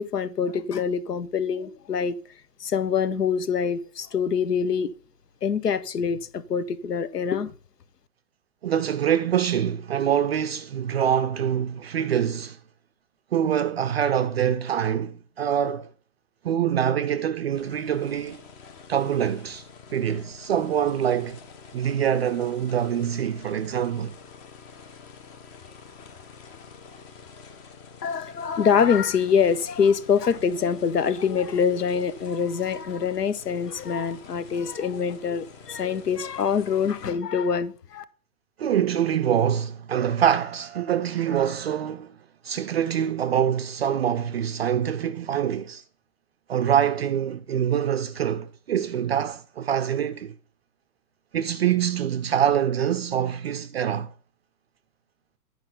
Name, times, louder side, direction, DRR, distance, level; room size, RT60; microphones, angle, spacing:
voice 1, 0.0-2.2 2.6-4.9 5.4-7.5 28.0-38.0, left 6 dB, 75° left, 0.8 m, -25 dB
voice 2, 8.6-12.6 13.3-15.9 16.4-18.4 18.9-19.6 19.9-21.4 21.7-24.2 38.6-42.2 42.4-45.8 46.5-50.4 51.3-54.1, right 9 dB, 40° right, 0.5 m, -25 dB
sound 1, 17.5-37.1, left 5 dB, 25° left, 0.8 m, -47 dB
10.5 x 4.5 x 5.5 m
figure-of-eight pair, 105°, 49 cm